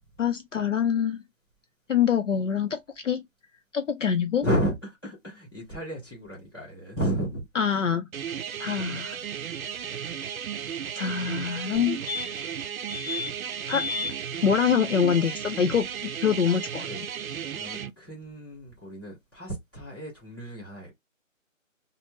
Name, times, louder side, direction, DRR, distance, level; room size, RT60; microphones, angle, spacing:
voice 1, 0.2-1.2 1.9-3.2 3.7-4.4 7.6-8.1 8.6-9.2 10.9-12.0 13.7-13.8 14.4-16.9, left 7 dB, 65° left, 0.5 m, -25 dB
voice 2, 4.4-7.4 13.6-13.7 16.9-17.0 17.5-20.9, equal, 15° left, 1.1 m, -32 dB
sound 1, 8.1-17.9, right 8 dB, 85° right, 0.5 m, -34 dB
sound 2, 11.7-11.8 12.1-12.5 12.9-13.3 13.7-14.1 16.5-16.6 16.8-16.9, left 5 dB, 15° right, 1.2 m, -33 dB
2.6 x 2.1 x 3.3 m
hypercardioid pair, 175°, 41 cm